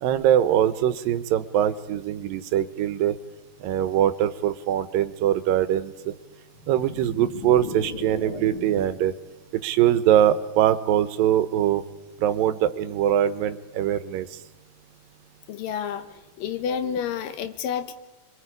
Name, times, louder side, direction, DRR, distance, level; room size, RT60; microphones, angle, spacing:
voice 1, 0.0-3.2 3.6-6.1 6.7-9.1 9.5-11.8 12.2-14.4, right 11 dB, 85° right, 12 dB, 2.6 m, -22 dB
sound 1, 6.5-9.1, left 5 dB, 45° left, 2.3 m, -37 dB
voice 2, 15.5-16.1 16.4-17.9, left 8 dB, 80° left, 9 dB, 2.8 m, -29 dB
29.5 x 23.0 x 5.0 m, 1.1 s
omnidirectional pair, 3.9 m